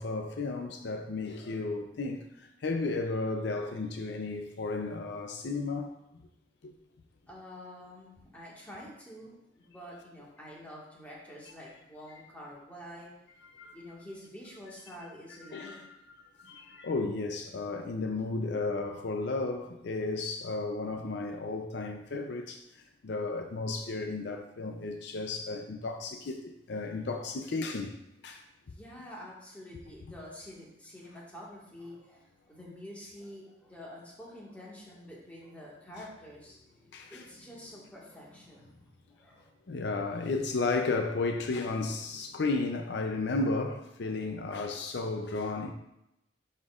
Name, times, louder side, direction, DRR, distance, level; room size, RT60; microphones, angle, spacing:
voice 1, 0.0-5.9 6.6-6.7 13.5-13.8 15.5-15.9 16.4-27.9 28.2-28.4 36.9-37.2 39.7-45.7, left 3 dB, 65° left, 0.5 m, -33 dB
voice 2, 7.3-13.1 13.7-15.8 28.7-39.5 41.7-42.5 44.0-44.2, equal, 10° left, 1.6 m, -48 dB
11.0 x 4.4 x 2.4 m
head